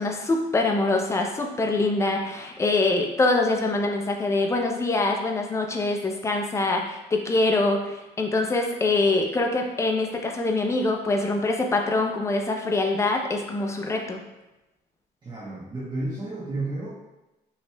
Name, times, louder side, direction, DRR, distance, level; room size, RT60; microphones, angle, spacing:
voice 1, 0.0-14.2, left 2 dB, 15° left, 2 dB, 0.5 m, -24 dB
voice 2, 15.2-16.9, right 2 dB, 25° right, -7 dB, 1.0 m, -32 dB
5.6 x 3.0 x 2.2 m, 0.97 s
cardioid pair, 110°, 17 cm